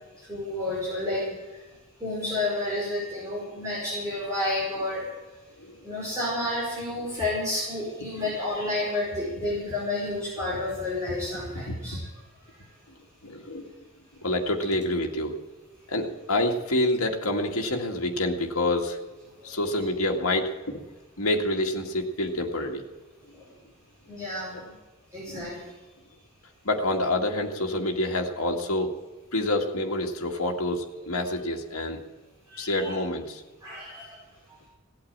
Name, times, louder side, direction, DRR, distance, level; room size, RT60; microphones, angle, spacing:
voice 1, 0.2-1.6 2.0-5.1 5.8-12.0 19.4-19.6 23.4-23.5 24.1-24.7 25.1-25.7 32.5-33.0 33.6-34.2 34.5-34.6, left 2 dB, 15° right, -7 dB, 5.4 m, -31 dB
voice 2, 11.7-12.0 13.2-13.7 14.2-15.4 15.9-19.0 19.4-20.8 21.2-22.8 24.5-24.6 26.6-28.9 29.3-32.0 32.6-33.4, left 1 dB, 80° left, 1 dB, 2.0 m, -27 dB
17.5 x 8.8 x 8.7 m, 1.2 s
head